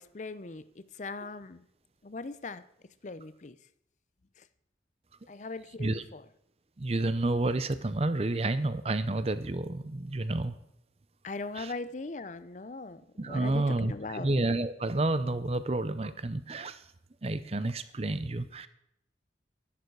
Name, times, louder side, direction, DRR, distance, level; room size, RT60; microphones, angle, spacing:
voice 1, 0.0-1.7 2.0-2.6 3.0-3.6 4.4-4.5 5.3-6.2 11.2-14.3, left 3 dB, 40° left, 15 dB, 0.5 m, -40 dB
voice 2, 6.8-10.5 11.6-11.7 13.2-16.8 17.2-18.7, right 2 dB, 35° right, 13 dB, 0.6 m, -30 dB
12.0 x 11.0 x 4.7 m, 0.77 s
head